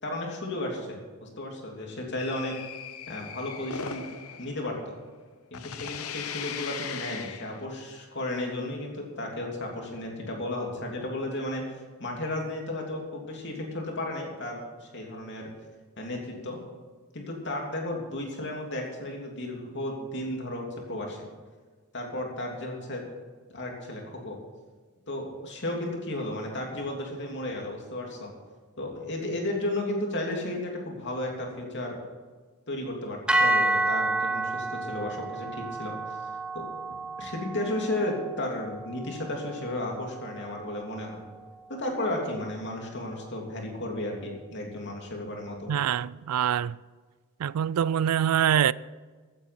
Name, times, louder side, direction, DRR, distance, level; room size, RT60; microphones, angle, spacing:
voice 1, 0.0-2.5 3.1-4.0 4.4-4.9 5.5-11.6 12.0-15.5 16.0-16.6 17.1-21.2 21.9-23.0 23.5-24.4 25.1-28.3 28.8-32.0 32.7-36.2 36.5-36.6 37.2-41.3 41.7-45.8, left 1 dB, 50° left, 3.0 m, -34 dB
sound 1, 2.2-5.3 5.5-7.6, left 7 dB, 75° left, 0.9 m, -39 dB
sound 2, 33.3-41.5, right 2 dB, 5° right, 0.7 m, -30 dB
voice 2, 45.7-46.8 47.4-48.7, right 9 dB, 80° right, 0.3 m, -24 dB
15.5 x 9.1 x 6.0 m
head